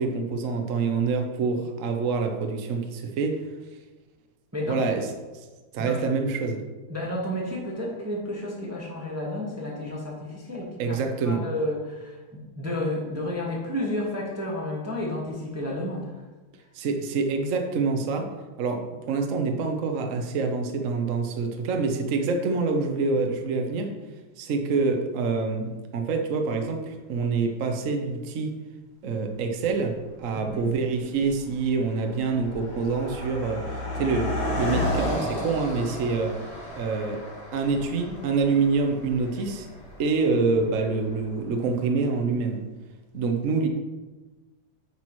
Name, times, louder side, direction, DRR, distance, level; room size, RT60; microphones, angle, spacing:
voice 1, 0.0-3.4 4.7-5.0 5.7-6.6 10.8-11.4 16.7-18.3 18.6-23.9 24.4-28.5 29.0-34.3 34.6-36.3 36.7-37.2 37.5-39.7 40.0-42.6 43.1-43.7, right 4 dB, 55° right, 4 dB, 0.9 m, -26 dB
voice 2, 4.5-4.8 5.8-6.0 6.9-16.2 30.3-30.7 34.6-34.8, left 1 dB, 10° right, -3 dB, 1.0 m, -31 dB
Car passing by, 29.6-29.7 30.5-30.7 31.0-41.4, left 1 dB, 75° left, 3.2 m, -33 dB
9.5 x 6.0 x 3.0 m, 1.2 s
omnidirectional pair, 2.2 m